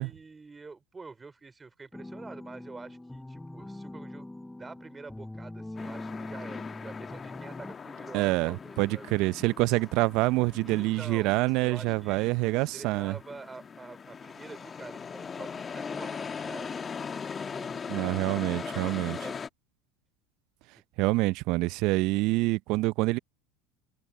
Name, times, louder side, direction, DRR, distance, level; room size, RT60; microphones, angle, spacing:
voice 1, 0.0-4.3 4.6-9.1 10.6-18.1 18.6-19.4, right 4 dB, 15° right, 3.9 m, -47 dB
sound 1, 1.9-7.7, left 1 dB, 5° left, 7.3 m, -42 dB
sound 2, 5.8-19.5, left 6 dB, 25° left, 1.5 m, -40 dB
voice 2, 8.1-13.1 17.9-19.2 21.0-23.2, right 21 dB, 60° right, 0.6 m, -26 dB
supercardioid pair, 105°, 0 cm